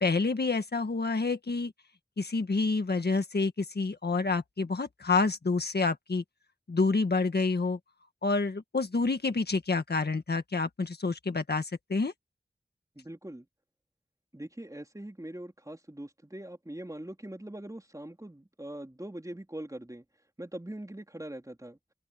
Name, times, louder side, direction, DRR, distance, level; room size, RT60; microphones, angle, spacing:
voice 1, 0.0-1.7 2.2-6.2 6.7-7.8 8.2-12.1, left 3 dB, 80° left, 1.7 m, -28 dB
voice 2, 13.0-13.5 14.3-20.1 20.4-21.8, right 1 dB, 20° right, 3.9 m, -42 dB
open air
wide cardioid pair, 50°, 17 cm